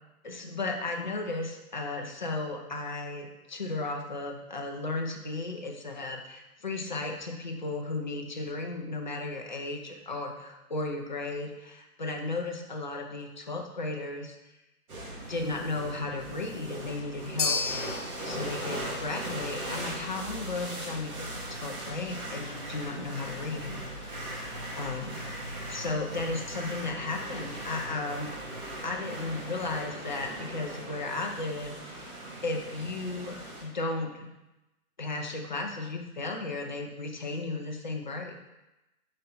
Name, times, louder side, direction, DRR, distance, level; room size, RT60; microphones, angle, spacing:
voice 1, 0.2-14.4 15.3-17.6 18.2-28.3 28.8-33.4 33.6-34.3 35.0-38.3, left 3 dB, 30° left, 1 dB, 0.6 m, -35 dB
sound 1, 14.9-33.6, right 1 dB, 65° right, 2.2 m, -39 dB
sound 2, 17.4-25.8, left 4 dB, 50° left, 1.4 m, -38 dB
7.3 x 4.4 x 4.0 m, 0.99 s
hypercardioid pair, 170°, 46 cm